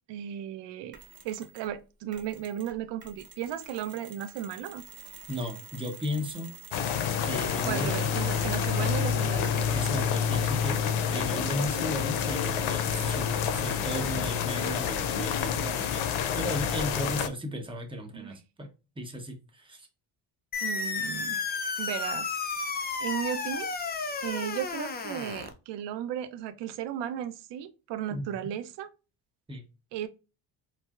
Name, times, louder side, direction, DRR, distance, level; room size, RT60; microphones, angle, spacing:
voice 1, 0.1-1.0 1.2-4.8 7.7-9.8 18.1-18.4 20.6-21.4 21.8-22.4 23.0-23.7 24.2-28.9 29.9-30.1, right 10 dB, 60° right, 0.5 m, -35 dB
Mechanisms, 0.9-1.7 2.1-9.0, right 6 dB, 45° right, 0.9 m, -49 dB
voice 2, 5.3-6.5 7.2-8.0 9.7-16.0 16.3-18.7 19.0-19.9 28.1-28.5 29.5-29.6, equal, 10° right, 0.8 m, -35 dB
sound 1, 6.7-17.3, left 7 dB, 75° left, 0.6 m, -28 dB
sound 2, 20.5-25.5, left 4 dB, 20° left, 0.4 m, -32 dB
4.4 x 2.0 x 2.3 m
cardioid pair, 100°, 48 cm